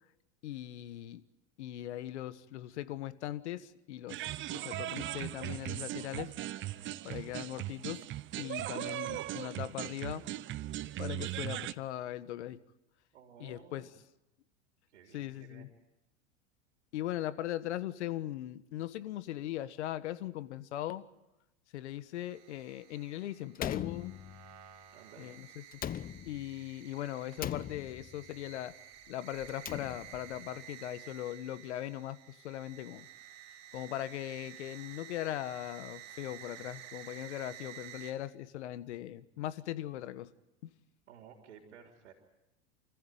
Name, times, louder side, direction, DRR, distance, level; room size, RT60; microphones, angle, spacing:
voice 1, 0.4-1.2 1.6-6.7 7.0-8.1 8.4-10.2 11.0-12.6 13.4-13.9 15.1-15.7 16.9-21.0 21.7-24.1 25.2-25.6 26.2-28.7 29.1-33.1 33.7-40.3 40.6-40.7, left 13 dB, 80° left, 14 dB, 1.5 m, -39 dB
sound 1, 4.1-11.7, right 14 dB, 35° right, 0.8 m, -39 dB
voice 2, 13.1-13.9 14.9-15.7 24.9-25.3 41.1-42.1, right 7 dB, 85° right, 3 dB, 3.7 m, -55 dB
sound 2, 22.1-38.1, right 11 dB, 50° right, 5.6 m, -52 dB
Slam, 23.5-24.7 25.7-26.6 27.4-28.3 29.4-30.4, left 10 dB, 25° left, 0.8 m, -40 dB
29.0 x 14.5 x 9.3 m, 0.94 s
hypercardioid pair, 105°, 34 cm